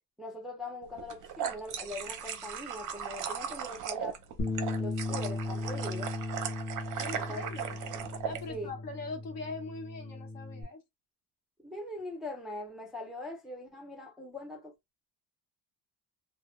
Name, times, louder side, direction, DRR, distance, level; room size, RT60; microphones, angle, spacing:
voice 1, 0.2-4.2 4.8-6.1 7.1-7.4 8.5-8.7 11.6-14.7, left 1 dB, ahead, 0.5 m, -41 dB
sound 1, 1.0-8.4, right 8 dB, 55° right, 0.5 m, -38 dB
Bass guitar, 4.4-10.6, left 2 dB, 35° left, 0.7 m, -37 dB
voice 2, 7.0-7.6 8.2-10.8, left 3 dB, 60° left, 0.9 m, -41 dB
2.0 x 2.0 x 3.0 m
cardioid pair, 140°, 38 cm